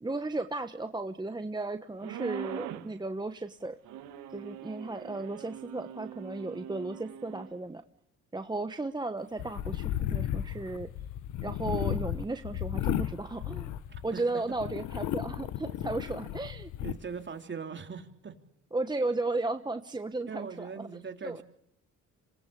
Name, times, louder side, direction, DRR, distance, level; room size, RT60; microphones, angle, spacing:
voice 1, 0.0-3.8 4.3-7.8 8.3-10.9 11.4-13.7 14.0-16.7 18.7-20.9 21.2-21.4, right 2 dB, 15° right, 8 dB, 1.1 m, -35 dB
sound 1, 2.0-2.9 3.9-7.5, right 10 dB, 90° right, 1.9 m, -42 dB
sound 2, 9.4-14.2 14.6-17.0, left 11 dB, 85° left, 1.3 m, -34 dB
voice 2, 13.9-14.4 16.8-18.3 20.3-21.4, right 6 dB, 40° right, 5 dB, 3.3 m, -40 dB
26.5 x 19.5 x 8.5 m, 0.73 s
cardioid pair, 90°, 30 cm